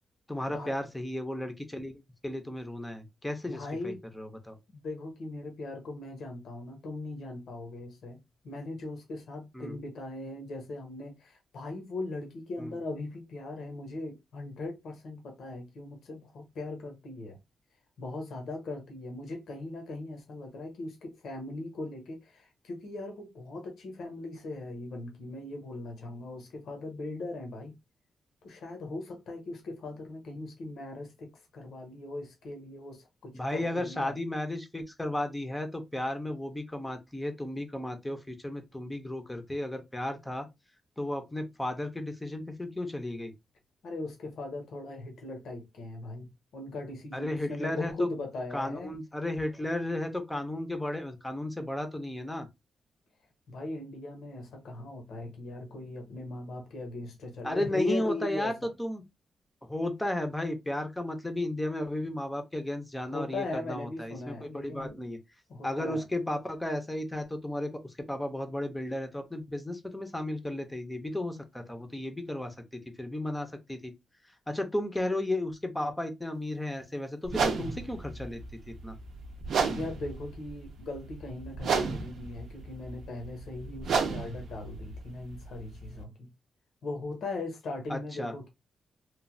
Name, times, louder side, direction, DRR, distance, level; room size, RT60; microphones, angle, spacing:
voice 1, 0.3-4.6 9.5-9.8 12.6-12.7 33.3-40.5 41.0-43.3 47.1-48.1 48.5-52.5 57.4-58.5 58.8-59.0 59.7-65.2 65.6-73.9 74.5-78.4 78.7-79.0 87.9-88.3, left 1 dB, 10° left, 0.5 m, -34 dB
voice 2, 3.4-4.0 4.8-17.4 18.0-27.8 28.4-34.2 43.8-48.9 53.5-58.7 63.1-65.0 65.5-66.0 79.7-86.3 86.8-88.5, left 2 dB, 80° left, 0.8 m, -39 dB
sound 1, 77.3-86.0, right 5 dB, 75° right, 0.5 m, -33 dB
3.0 x 2.1 x 2.5 m
wide cardioid pair, 165°, 0 cm